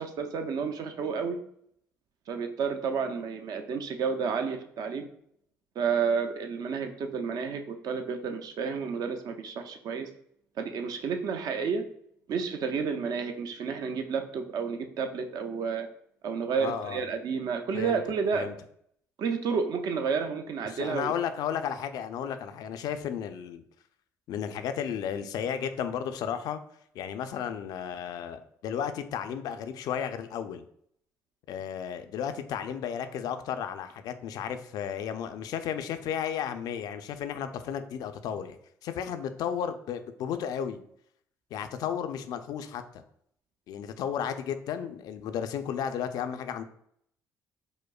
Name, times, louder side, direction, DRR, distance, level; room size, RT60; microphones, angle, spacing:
voice 1, 0.0-1.4 2.3-5.1 5.8-10.1 10.6-11.8 12.3-15.9 16.2-18.5 19.2-21.1, right 5 dB, 65° right, 6 dB, 0.5 m, -31 dB
voice 2, 16.6-17.0 17.7-18.0 18.3-18.5 20.7-23.6 24.3-26.6 26.9-30.6 31.5-38.6 38.8-40.8 41.5-43.0 43.7-46.6, left 8 dB, 70° left, 9 dB, 0.3 m, -33 dB
5.0 x 2.0 x 2.3 m, 0.67 s
supercardioid pair, 65°, 7 cm